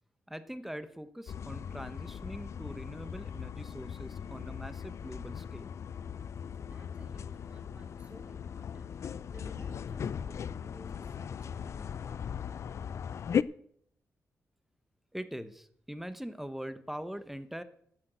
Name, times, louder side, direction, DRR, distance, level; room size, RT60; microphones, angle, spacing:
voice 1, 0.3-5.7 15.1-17.6, equal, 5° right, 12 dB, 0.9 m, -42 dB
sound 1, 1.3-13.4, left 7 dB, 60° left, 0.4 m, -38 dB
voice 2, 6.6-12.7, right 1 dB, 20° right, 2 dB, 3.0 m, -56 dB
10.0 x 8.9 x 8.0 m, 0.68 s
wide cardioid pair, 120°, 6 cm